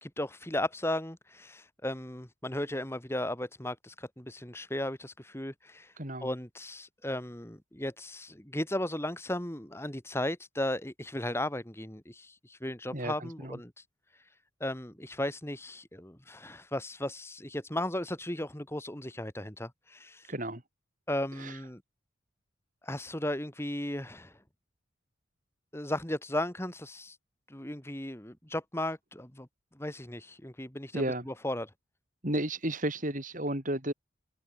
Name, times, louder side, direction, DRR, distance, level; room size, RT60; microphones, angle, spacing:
voice 1, 0.0-5.9 6.2-13.7 14.6-20.3 21.1-21.8 22.8-24.3 25.7-27.2 27.5-29.5 29.7-31.7, left 1 dB, 10° left, 2.1 m, -36 dB
voice 2, 6.0-6.3 12.9-13.6 20.3-20.6 21.4-21.6 30.9-31.3 32.2-33.9, right 1 dB, 40° right, 4.5 m, -33 dB
open air
head